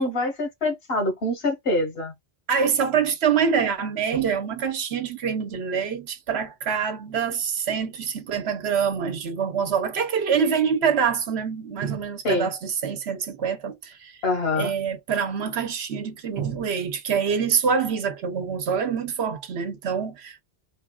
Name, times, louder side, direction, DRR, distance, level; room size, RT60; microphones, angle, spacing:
voice 1, 0.0-2.1 12.2-12.5 14.2-14.7, left 2 dB, 70° left, 1.4 m, -25 dB
voice 2, 2.5-14.2 14.6-20.4, right 6 dB, 85° right, 1.1 m, -25 dB
4.0 x 2.4 x 2.2 m
omnidirectional pair, 1.1 m